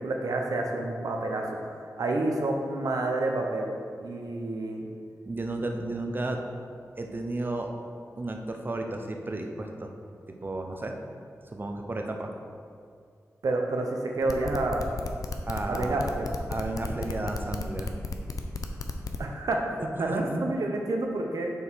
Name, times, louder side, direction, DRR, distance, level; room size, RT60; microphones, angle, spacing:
voice 1, 0.0-3.7 4.0-4.9 13.4-14.9 15.7-16.3 19.2-21.5, right 2 dB, 85° right, 1 dB, 0.8 m, -29 dB
voice 2, 5.3-6.4 7.0-7.7 8.2-9.9 10.4-10.9 11.5-12.3 15.5-16.0 16.5-17.9 19.8-20.4, right 2 dB, 35° right, 3 dB, 0.7 m, -32 dB
sound 1, 14.2-19.2, left 3 dB, 75° left, 0.5 m, -33 dB
6.6 x 4.7 x 4.6 m, 2.3 s
wide cardioid pair, 75°, 6 cm